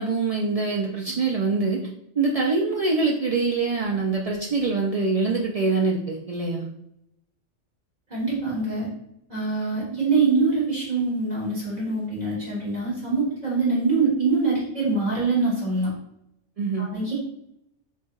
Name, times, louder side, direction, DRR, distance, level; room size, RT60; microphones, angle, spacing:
voice 1, 0.0-1.8 2.2-6.7 16.6-16.9, right 3 dB, 65° right, -1 dB, 0.3 m, -24 dB
voice 2, 8.1-8.9 9.3-15.9 16.8-17.1, right 3 dB, 35° right, -7 dB, 1.6 m, -24 dB
3.9 x 2.4 x 3.7 m, 0.77 s
omnidirectional pair, 1.2 m